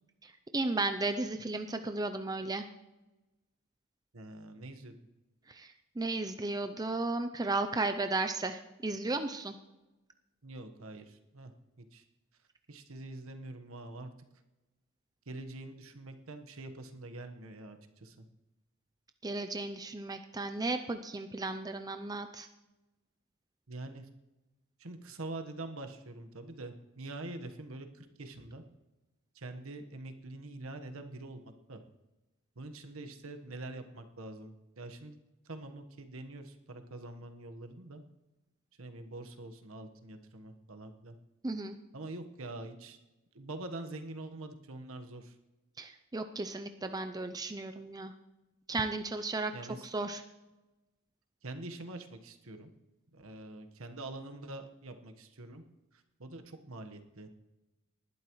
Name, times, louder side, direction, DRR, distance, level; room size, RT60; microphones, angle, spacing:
voice 1, 0.2-2.7 5.5-9.5 19.2-22.5 41.4-41.8 45.8-48.1 48.7-49.5 49.8-50.2, right 3 dB, 20° right, 7 dB, 0.5 m, -34 dB
voice 2, 4.1-4.9 10.4-11.5 11.8-12.0 12.7-14.1 15.3-18.2 23.7-24.1 24.8-28.6 29.3-31.4 31.7-31.8 32.6-35.2 35.4-38.0 38.8-41.2 41.9-43.0 43.3-45.3 49.5-49.9 51.4-52.7 53.1-55.6 56.2-57.3, right 2 dB, 65° right, 6 dB, 1.4 m, -45 dB
19.5 x 11.5 x 3.2 m, 1.0 s
head